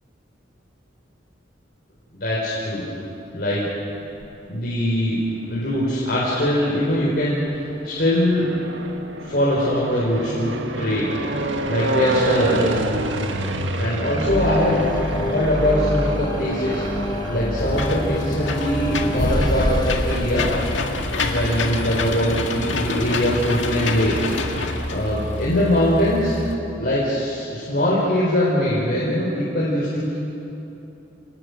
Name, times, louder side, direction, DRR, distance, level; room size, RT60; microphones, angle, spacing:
voice 1, 2.1-2.8 3.3-3.7 4.5-5.2 5.5-8.5 9.2-10.5 10.8-11.1 11.7-12.7 13.8-14.8 15.1-16.8 17.3-20.5 21.2-24.2 24.9-26.4 26.8-30.2, left 1 dB, 55° left, -7 dB, 4.8 m, -22 dB
sound 1, 3.9-4.7 5.4-19.4, right 1 dB, 85° right, 1.8 m, -29 dB
sound 2, 14.3-23.7, left 1 dB, 20° left, 1.1 m, -27 dB
Engine / Mechanisms, 17.6-26.5, left 2 dB, 85° left, 1.9 m, -27 dB
29.5 x 19.5 x 6.7 m, 3.0 s
head